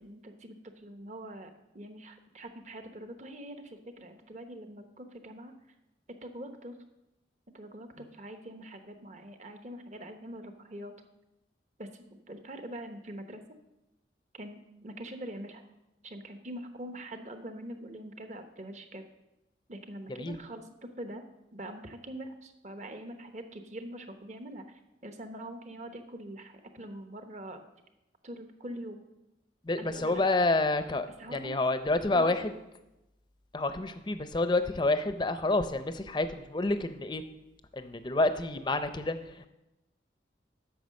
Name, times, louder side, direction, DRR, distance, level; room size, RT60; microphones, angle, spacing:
voice 1, 0.0-5.5 6.2-6.8 7.5-10.9 11.8-13.4 14.3-15.6 16.0-19.0 19.7-21.2 21.5-24.6 25.0-27.6 28.2-29.0 29.8-30.2 31.2-31.6 32.1-32.5, right 1 dB, 40° right, 7 dB, 0.9 m, -44 dB
voice 2, 29.6-32.5 33.5-37.2 37.7-39.5, left 2 dB, 25° left, 10 dB, 0.5 m, -29 dB
9.4 x 6.5 x 6.4 m, 0.94 s
head